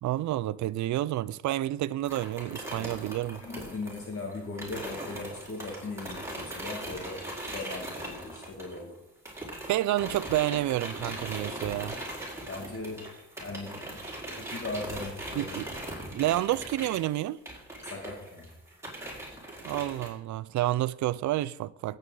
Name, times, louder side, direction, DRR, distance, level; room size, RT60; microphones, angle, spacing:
voice 1, 0.0-3.4 9.7-12.0 15.3-15.7 16.1-17.4 19.6-22.0, right 14 dB, 70° right, 0.5 m, -29 dB
sound 1, 2.0-9.0 9.2-20.1, right 1 dB, 10° right, 4.3 m, -40 dB
voice 2, 3.4-7.3 7.5-9.0 12.5-13.1 13.4-15.5 17.8-18.5, left 3 dB, 45° left, 2.0 m, -39 dB
17.0 x 8.1 x 3.8 m
cardioid pair, 90°, 30 cm